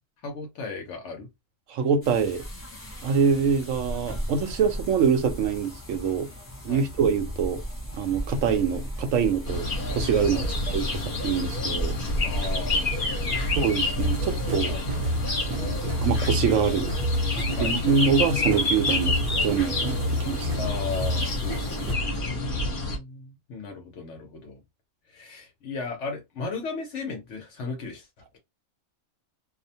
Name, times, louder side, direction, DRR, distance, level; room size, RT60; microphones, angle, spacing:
voice 1, 0.2-1.3 6.7-6.9 10.3-10.5 12.2-13.6 14.7-15.1 17.6-17.7 20.6-24.6 25.1-28.1, left 4 dB, 65° left, 1.0 m, -36 dB
voice 2, 1.7-2.4 3.0-6.3 6.6-7.6 7.9-11.9 13.6-14.7 15.5-16.9 17.6-19.2 19.4-20.5, right 6 dB, 80° right, 1.1 m, -25 dB
sound 1, 2.0-21.9, equal, 20° left, 0.4 m, -37 dB
sound 2, 9.5-23.0, left 2 dB, 45° left, 1.1 m, -29 dB
sound 3, 14.0-22.2, equal, 55° right, 0.6 m, -30 dB
2.7 x 2.1 x 2.7 m
omnidirectional pair, 1.4 m